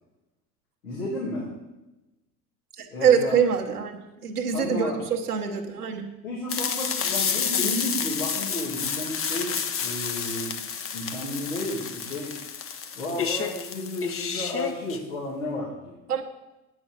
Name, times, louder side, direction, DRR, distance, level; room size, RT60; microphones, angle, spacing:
voice 1, 0.8-1.5 2.9-3.4 4.5-5.0 6.2-10.5 10.9-12.4 12.9-16.0, left 1 dB, 80° left, -6 dB, 2.8 m, -32 dB
voice 2, 2.8-6.1 16.1-16.2, right 7 dB, 85° right, 1 dB, 1.2 m, -24 dB
sound 1, 6.5-15.0, left 7 dB, 30° left, 0.9 m, -30 dB
8.9 x 6.2 x 7.6 m, 1.0 s
figure-of-eight pair, 65°, 44 cm